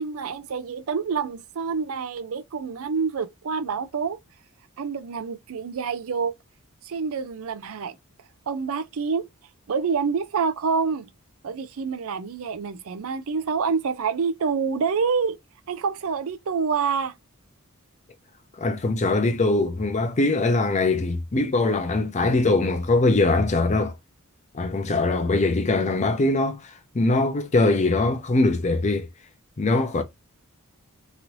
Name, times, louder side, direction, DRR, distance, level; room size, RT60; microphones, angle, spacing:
voice 1, 0.0-4.2 4.8-6.3 6.8-8.0 8.5-9.3 9.7-11.1 11.4-15.4 15.7-17.1, right 5 dB, 65° right, 0.5 m, -27 dB
voice 2, 18.6-23.9 24.5-29.1 29.6-30.0, left 2 dB, 30° left, 0.5 m, -22 dB
3.0 x 2.6 x 3.0 m
head